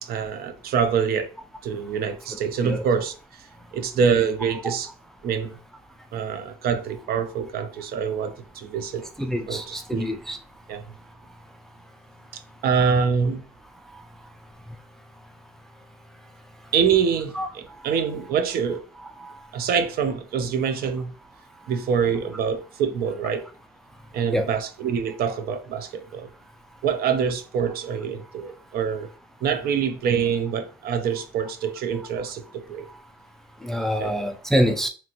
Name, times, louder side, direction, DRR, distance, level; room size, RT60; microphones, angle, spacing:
voice 1, 0.0-1.3 1.6-3.5 3.7-4.9 5.2-5.5 6.1-9.1 9.5-10.1 10.7-10.8 12.3-13.4 16.7-18.8 19.5-21.1 21.7-23.4 24.1-26.3 26.8-29.1 29.4-32.9 34.0-34.1, right 6 dB, 65° right, 0.6 m, -25 dB
voice 2, 9.2-10.4 17.4-17.5 19.2-19.3 24.3-24.4 33.6-34.9, equal, ahead, 0.4 m, -25 dB
2.9 x 2.5 x 2.9 m
cardioid pair, 110°, 17 cm